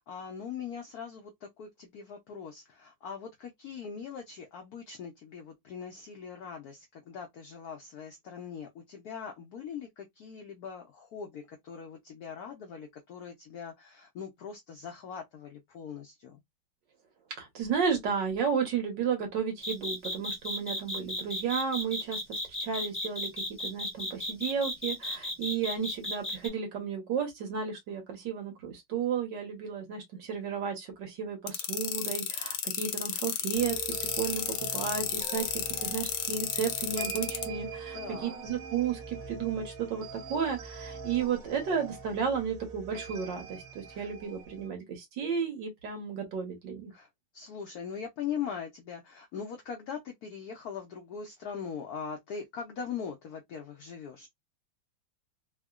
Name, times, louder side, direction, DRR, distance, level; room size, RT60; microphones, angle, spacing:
voice 1, 0.0-16.4 37.9-38.4 43.9-44.1 46.9-47.1 47.3-54.3, left 7 dB, 90° left, 0.8 m, -41 dB
voice 2, 17.4-46.9, right 7 dB, 65° right, 1.6 m, -33 dB
sound 1, 19.6-26.5, left 1 dB, 15° left, 0.4 m, -34 dB
sound 2, 31.5-37.4, left 9 dB, 70° left, 1.1 m, -32 dB
sound 3, 33.5-44.7, right 5 dB, 85° right, 0.7 m, -43 dB
3.6 x 2.1 x 2.3 m
omnidirectional pair, 2.3 m